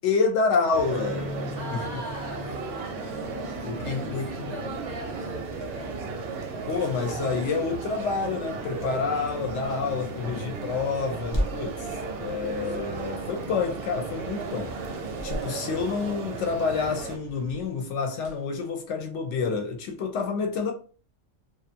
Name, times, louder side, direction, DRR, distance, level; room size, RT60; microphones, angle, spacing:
voice 1, 0.0-1.8 3.6-4.5 6.7-11.9 12.1-14.8 15.2-20.7, left 5 dB, 70° left, 0.9 m, -28 dB
sound 1, 0.7-17.2, right 4 dB, 60° right, 0.7 m, -35 dB
sound 2, 0.9-14.1 14.4-14.6 15.0-15.1, left 2 dB, 25° left, 0.9 m, -43 dB
voice 2, 1.5-3.2 3.5-6.2, right 1 dB, 30° right, 0.5 m, -41 dB
sound 3, 6.4-19.3, equal, 45° left, 0.3 m, -40 dB
2.5 x 2.3 x 2.6 m
omnidirectional pair, 1.3 m